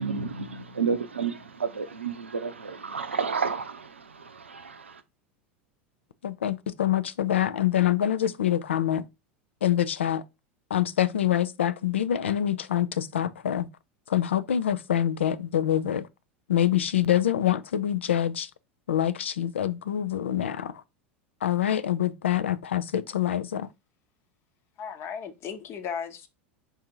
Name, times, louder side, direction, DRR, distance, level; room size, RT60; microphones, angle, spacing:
voice 1, 0.0-5.0, right 5 dB, 90° right, 0.5 m, -31 dB
voice 2, 6.2-9.1 9.6-10.2 10.7-13.7 14.1-16.1 16.5-18.5 18.9-20.8 21.4-23.7, left 11 dB, 80° left, 0.4 m, -25 dB
voice 3, 24.8-26.3, left 7 dB, 40° left, 0.9 m, -35 dB
3.9 x 2.7 x 4.5 m
hypercardioid pair, 85°, 6 cm